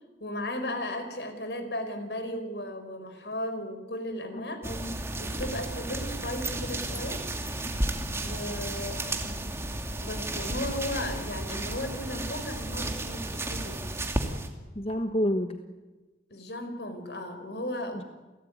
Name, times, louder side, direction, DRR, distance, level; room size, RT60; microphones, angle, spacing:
voice 1, 0.2-4.6 5.2-7.2 8.2-9.4 10.0-13.8 16.3-18.1, left 1 dB, 70° left, 8 dB, 4.8 m, -35 dB
voice 2, 4.3-4.9 14.7-15.6 17.9-18.0, equal, 35° left, 7 dB, 1.3 m, -30 dB
sound 1, 4.6-14.5, right 1 dB, 15° right, 2.5 m, -33 dB
29.0 x 17.5 x 9.6 m, 1.2 s
head